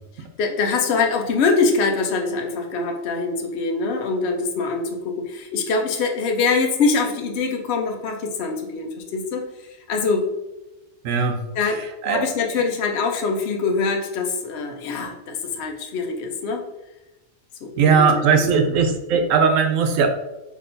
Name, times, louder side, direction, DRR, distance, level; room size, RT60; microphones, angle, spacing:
voice 1, 0.4-9.4 9.9-10.3 11.6-11.8 12.0-16.6 17.6-17.9 18.4-18.5, left 4 dB, 60° left, 3 dB, 0.9 m, -23 dB
voice 2, 11.0-12.2 17.8-20.1, right 5 dB, 80° right, 6 dB, 1.0 m, -19 dB
6.1 x 3.0 x 2.6 m, 0.98 s
omnidirectional pair, 1.4 m